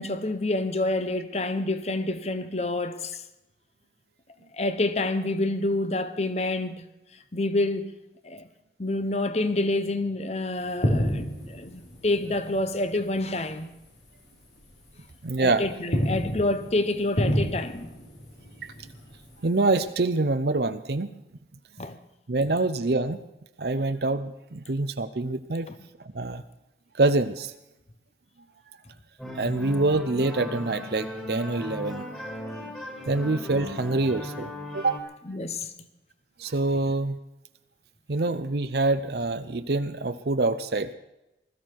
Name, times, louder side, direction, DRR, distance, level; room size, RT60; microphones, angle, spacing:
voice 1, 0.0-3.2 4.5-6.8 7.3-7.9 8.2-8.5 8.8-13.7 15.4-17.9 21.8-22.0 35.3-35.7, left 2 dB, 35° left, 1.0 m, -28 dB
sound 1, 10.6-13.6 13.8-14.1 14.6-15.4 15.7-19.9, equal, 80° left, 4.3 m, -30 dB
voice 2, 15.2-15.6 18.6-18.7 19.4-21.1 22.3-23.2 23.6-25.7 26.1-26.4 26.9-27.5 29.3-32.1 33.1-35.0 36.4-37.2 38.1-40.9, right 2 dB, 60° right, 0.7 m, -25 dB
sound 2, 29.2-35.0, left 1 dB, 5° left, 2.2 m, -37 dB
20.5 x 14.0 x 4.7 m
head